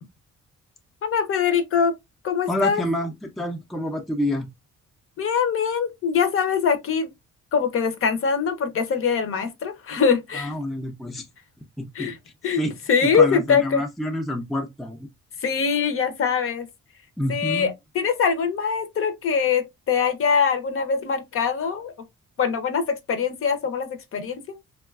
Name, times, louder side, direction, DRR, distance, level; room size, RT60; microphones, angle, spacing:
voice 1, 1.0-1.9 2.2-2.8 5.2-7.1 7.5-10.5 11.9-12.2 12.4-12.6 12.9-13.8 15.4-16.7 17.3-21.9 22.4-24.6, left 6 dB, 50° left, 0.6 m, -23 dB
voice 2, 2.5-4.5 10.3-11.3 11.8-12.1 12.6-12.7 13.0-15.0 17.2-17.7, left 1 dB, ahead, 0.4 m, -28 dB
3.6 x 2.3 x 2.2 m
cardioid pair, 135°, 29 cm